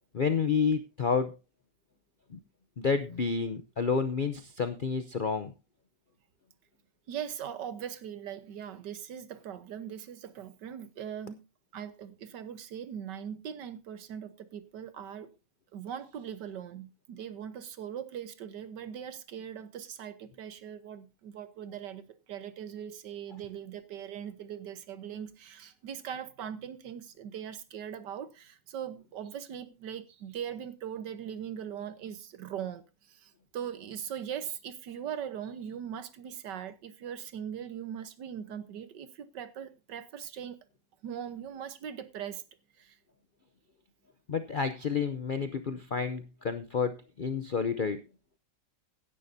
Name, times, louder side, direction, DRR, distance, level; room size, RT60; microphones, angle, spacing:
voice 1, 0.1-1.4 2.3-2.4 2.8-5.5 44.3-48.0, left 5 dB, 60° left, 0.5 m, -30 dB
voice 2, 7.1-11.4 11.7-15.3 15.7-40.6 41.0-42.4 42.8-43.0, right 9 dB, 80° right, 1.6 m, -40 dB
16.5 x 10.5 x 2.7 m
omnidirectional pair, 1.9 m